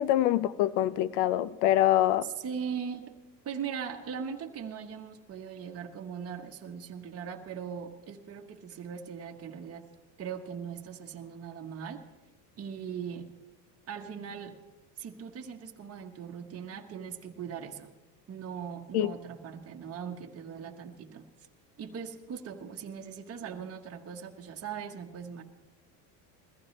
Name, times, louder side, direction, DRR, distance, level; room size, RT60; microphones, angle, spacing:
voice 1, 0.0-2.3 18.9-19.1, left 13 dB, 75° left, 17 dB, 0.8 m, -25 dB
voice 2, 2.2-3.1 3.4-9.9 10.2-12.0 12.6-13.3 13.9-14.6 15.0-17.9 18.3-21.3 21.8-25.4, right 7 dB, 30° right, 2 dB, 1.2 m, -40 dB
21.0 x 15.0 x 3.2 m, 1.1 s
supercardioid pair, 110°, 48 cm